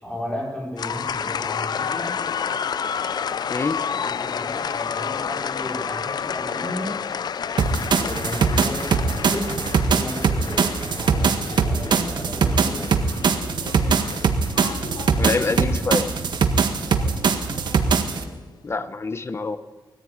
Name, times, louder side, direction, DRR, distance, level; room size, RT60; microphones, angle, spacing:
voice 1, 0.0-2.2 3.9-6.9 7.9-13.0 16.7-17.0, left 1 dB, 15° left, -1 dB, 5.5 m, -34 dB
sound 1, 0.8-18.4, left 7 dB, 65° left, 0.6 m, -31 dB
sound 2, 7.6-18.2, right 5 dB, 80° right, 1.7 m, -22 dB
voice 2, 15.2-16.1 18.6-19.6, left 4 dB, 35° left, 12 dB, 1.1 m, -25 dB
20.5 x 14.5 x 9.6 m, 1.2 s
wide cardioid pair, 160°, 8 cm